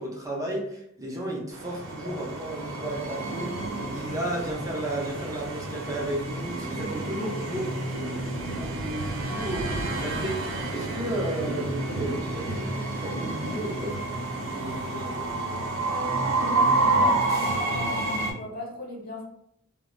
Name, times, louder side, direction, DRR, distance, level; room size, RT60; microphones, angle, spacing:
voice 1, 0.0-3.5 3.8-7.7 8.4-10.4 10.7-14.0 14.3-15.3, right 1 dB, 15° right, -3 dB, 0.5 m, -33 dB
Train, 1.5-18.3, right 2 dB, 75° right, 0.6 m, -29 dB
voice 2, 15.8-19.2, left 2 dB, 50° left, -3 dB, 0.9 m, -38 dB
2.1 x 2.0 x 3.7 m, 0.72 s
head